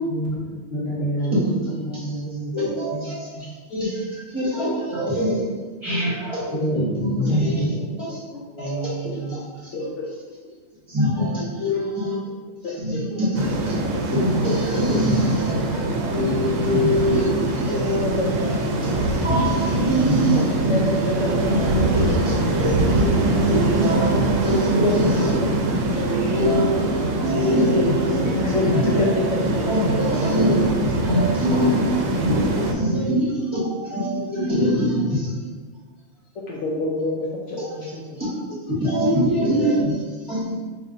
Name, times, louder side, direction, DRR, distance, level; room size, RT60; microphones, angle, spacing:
voice 1, 0.7-2.5 2.9-3.1 3.3-3.4 6.5-7.7 8.1-9.4 27.7-27.8, right 2 dB, 50° left, -7 dB, 1.3 m, -28 dB
voice 2, 2.5-5.5 5.8-7.6 8.0-8.2 8.6-9.5 9.8-9.9 10.9-12.2 12.6-18.0 18.4-18.6 18.8-20.8 21.5-21.7 21.9-25.3 26.3-26.9 27.2-28.3 28.6-29.0 29.7-30.7 31.0-35.3 37.6-37.8 38.2-40.0 40.3-40.6, equal, 20° right, -10 dB, 1.4 m, -24 dB
sound 1, 13.3-32.7, right 1 dB, 70° right, 0.9 m, -23 dB
sound 2, 19.3-25.1 25.9-31.0, right 4 dB, 40° right, 0.8 m, -29 dB
voice 3, 20.6-21.5 22.1-22.2 24.7-25.1 26.0-26.2 28.2-29.1 29.4-29.5 30.2-30.3 36.5-38.2, left 3 dB, 70° left, -3 dB, 0.9 m, -26 dB
5.4 x 2.8 x 2.5 m, 1.4 s
omnidirectional pair, 1.4 m